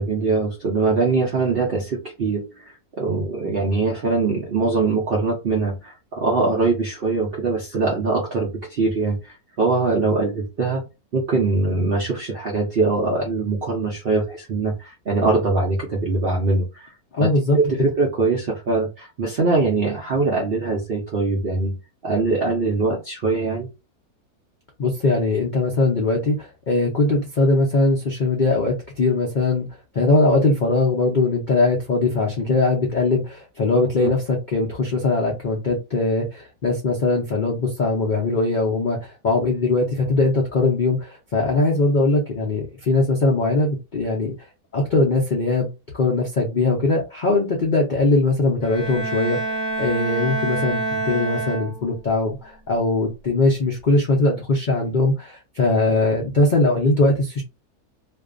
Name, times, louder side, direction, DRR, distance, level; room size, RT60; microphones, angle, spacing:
voice 1, 0.0-10.8 11.1-16.9 17.2-17.3 17.5-21.7 22.0-23.7 34.0-34.1, right 3 dB, 65° right, -2 dB, 0.5 m, -22 dB
voice 2, 17.1-17.6 24.8-29.7 29.9-44.3 44.7-45.7 45.9-57.4, left 2 dB, 80° left, -1 dB, 0.4 m, -21 dB
Bowed string instrument, 48.6-52.1, right 2 dB, 35° left, 1.0 m, -27 dB
2.5 x 2.2 x 2.4 m, 0.27 s
omnidirectional pair, 1.7 m